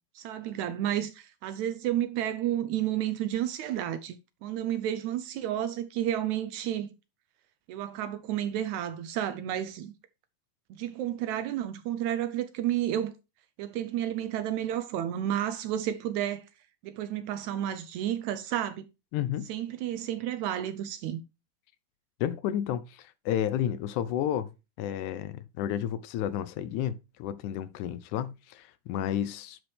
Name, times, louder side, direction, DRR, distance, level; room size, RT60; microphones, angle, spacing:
voice 1, 0.2-4.2 4.4-6.9 7.7-9.9 10.7-13.1 13.6-16.5 16.8-18.9 19.5-21.2, right 11 dB, 75° right, 1.8 m, -31 dB
voice 2, 19.1-19.5 22.2-24.5 24.8-29.6, left 10 dB, 80° left, 2.0 m, -31 dB
10.0 x 4.7 x 3.3 m
omnidirectional pair, 3.7 m